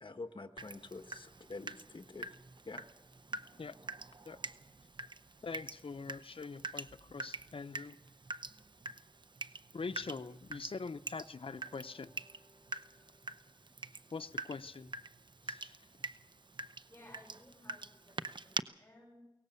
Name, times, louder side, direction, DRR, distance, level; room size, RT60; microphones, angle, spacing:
voice 1, 0.0-2.3 2.7-2.8, left 3 dB, 65° left, 7 dB, 1.2 m, -47 dB
Water tap faucet / Drip, 0.6-18.6, right 3 dB, 60° right, 0.8 m, -46 dB
voice 2, 5.4-8.0 9.7-12.1 14.1-14.9 15.5-15.8, left 4 dB, 85° left, 11 dB, 0.6 m, -43 dB
sound 1, 11.4-14.8, right 1 dB, 85° right, 7.1 m, -68 dB
voice 3, 16.9-19.3, left 1 dB, 25° left, -1 dB, 7.7 m, -58 dB
22.5 x 18.5 x 6.9 m, 0.92 s
wide cardioid pair, 55°, 9 cm